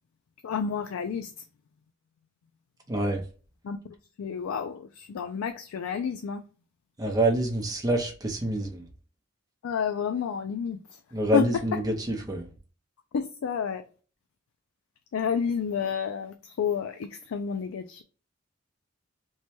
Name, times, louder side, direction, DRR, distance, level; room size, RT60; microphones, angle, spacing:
voice 1, 0.4-1.3 3.6-3.8 4.2-6.4 9.6-11.0 11.3-11.5 13.1-13.8 15.1-18.0, left 6 dB, 85° left, 0.4 m, -30 dB
voice 2, 2.9-3.2 7.0-8.9 11.1-12.5, right 1 dB, 20° right, 0.6 m, -26 dB
3.1 x 2.2 x 4.1 m
head